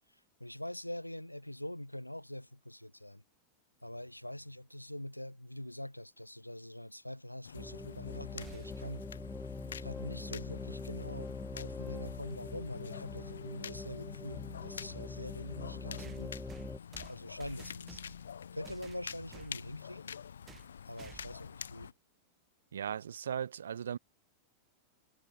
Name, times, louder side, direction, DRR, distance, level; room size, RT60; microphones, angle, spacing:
voice 1, 0.4-3.2 3.8-9.0 9.8-16.3 17.1-18.1 18.5-20.2 20.8-21.9, left 1 dB, 90° left, 1.5 m, -44 dB
sound 1, 7.4-21.9, left 7 dB, 70° left, 2.9 m, -47 dB
sound 2, 7.6-16.8, left 3 dB, 10° left, 0.7 m, -44 dB
sound 3, 8.4-9.0 11.1-11.2 12.3-12.4 16.0-18.3 18.6-19.6 20.5-20.7 21.0-21.5, right 8 dB, 25° right, 3.9 m, -53 dB
voice 2, 22.7-24.0, right 8 dB, 65° right, 1.0 m, -37 dB
figure-of-eight pair, 90°, 0 cm